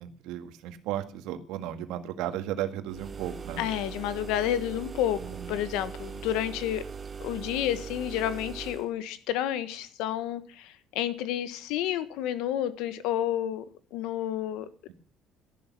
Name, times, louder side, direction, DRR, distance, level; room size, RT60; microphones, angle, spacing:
voice 1, 0.0-3.6 5.2-5.6, right 11 dB, 75° right, 8 dB, 2.0 m, -35 dB
sound 1, 2.9-8.9, right 6 dB, 20° right, 0.9 m, -40 dB
voice 2, 3.6-5.2 5.5-6.8 7.2-13.6 13.9-14.7, left 11 dB, 85° left, 14 dB, 1.4 m, -30 dB
13.0 x 11.5 x 6.1 m, 0.42 s
cardioid pair, 180°, 0 cm